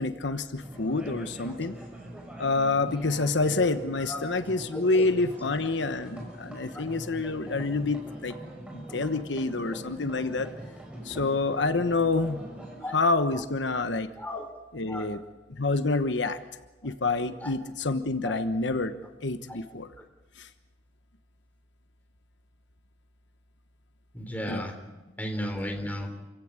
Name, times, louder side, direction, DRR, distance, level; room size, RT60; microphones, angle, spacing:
voice 1, 0.0-1.7 2.4-8.3 8.7-10.5 11.0-12.4 12.9-14.1 14.7-15.2 15.5-16.4 16.8-18.9 19.2-19.9 20.4-20.5 24.5-24.7, left 3 dB, 85° left, 10 dB, 1.2 m, -27 dB
sound 1, 0.6-12.8, right 1 dB, 5° right, 6.0 m, -43 dB
voice 2, 4.7-5.1 6.7-6.8 12.8-12.9 14.2-14.5 14.9-15.1 17.4-17.5 18.2-18.4 19.5-19.6 24.1-24.7 25.2-26.1, left 1 dB, 10° left, 3 dB, 3.5 m, -34 dB
28.0 x 16.5 x 9.8 m, 1.1 s
head